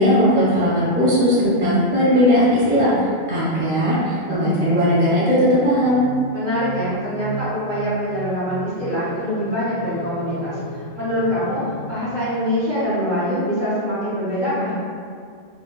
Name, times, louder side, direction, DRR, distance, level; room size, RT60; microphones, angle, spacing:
voice 1, 0.0-6.0, equal, 10° right, -10 dB, 0.6 m, -18 dB
sound 1, 4.5-12.5, right 1 dB, 55° left, 0.6 m, -35 dB
voice 2, 6.3-14.8, equal, 55° right, -10 dB, 0.8 m, -24 dB
2.7 x 2.2 x 2.2 m, 2.2 s
omnidirectional pair, 1.1 m